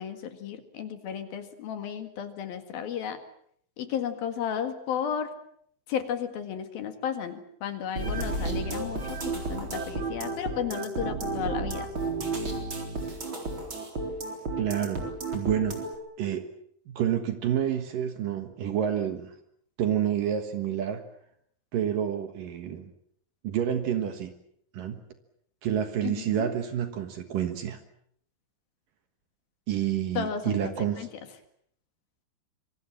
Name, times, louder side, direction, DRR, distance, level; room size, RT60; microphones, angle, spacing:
voice 1, 0.0-3.2 3.8-5.3 5.9-11.9 26.0-26.5 30.2-31.1, left 8 dB, 60° left, 9 dB, 3.4 m, -33 dB
sound 1, 8.0-16.0, right 3 dB, 30° right, 4.3 m, -32 dB
voice 2, 14.6-15.1 15.3-15.8 16.2-16.5 16.9-19.3 19.8-21.0 21.7-22.9 23.4-24.3 24.7-25.0 25.6-27.8 29.7-31.1, right 9 dB, 60° right, 9 dB, 2.7 m, -28 dB
26.0 x 24.0 x 7.4 m, 0.67 s
omnidirectional pair, 5.0 m